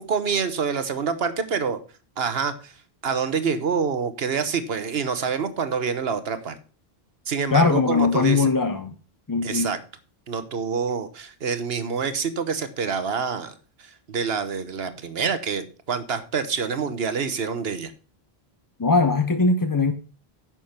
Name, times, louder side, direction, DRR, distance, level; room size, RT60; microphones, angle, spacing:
voice 1, 0.0-1.8 2.2-2.7 3.0-6.6 7.3-8.5 9.4-9.8 10.3-13.5 14.1-17.9, right 6 dB, 70° right, 1.3 m, -26 dB
voice 2, 7.5-8.9 9.3-9.7 18.8-19.9, left 4 dB, 25° left, 0.5 m, -20 dB
10.0 x 6.3 x 5.8 m
omnidirectional pair, 1.0 m